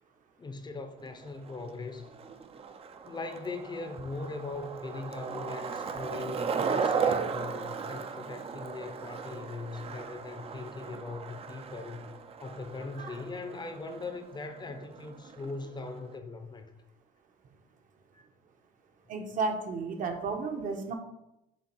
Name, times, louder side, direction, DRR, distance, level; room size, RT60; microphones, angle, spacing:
voice 1, 0.4-2.1 3.0-12.1 12.4-16.7, left 3 dB, 25° left, 0.7 m, -40 dB
Skateboard, 1.0-16.2, right 6 dB, 35° right, 0.5 m, -36 dB
voice 2, 19.1-20.9, right 4 dB, 50° right, 1.1 m, -33 dB
7.4 x 3.5 x 4.5 m
cardioid pair, 110°, 17 cm